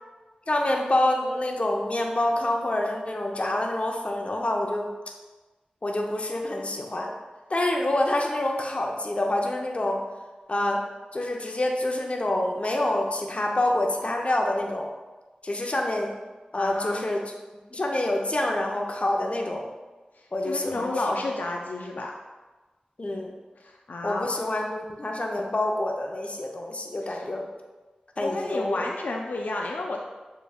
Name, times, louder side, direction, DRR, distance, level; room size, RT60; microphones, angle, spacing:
voice 1, 0.5-4.9 5.8-7.1 7.5-10.0 10.5-10.8 11.1-14.9 15.4-16.1 16.5-17.2 17.7-19.6 20.3-21.2 23.0-23.3 24.0-27.5 28.2-28.9, left 1 dB, 45° left, 1 dB, 0.7 m, -27 dB
voice 2, 16.5-17.1 20.1-22.1 23.6-24.3 27.0-27.2 28.2-30.0, left 2 dB, 85° left, 0 dB, 0.4 m, -31 dB
6.9 x 3.2 x 2.4 m, 1.2 s
wide cardioid pair, 60°, 3 cm